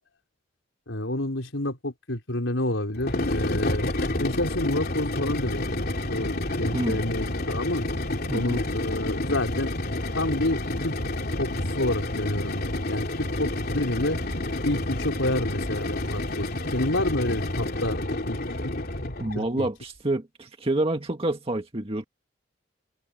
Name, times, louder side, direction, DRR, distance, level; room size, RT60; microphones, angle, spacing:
voice 1, 0.9-3.9 4.2-5.8 6.1-7.8 8.3-9.7 10.1-10.9 11.4-14.2 14.6-18.4 18.6-18.7 19.3-19.7, left 1 dB, 90° left, 4.4 m, -29 dB
sound 1, 3.0-19.4, left 1 dB, 55° left, 3.3 m, -29 dB
voice 2, 8.3-8.6 19.2-22.0, right 1 dB, 30° right, 1.9 m, -28 dB
head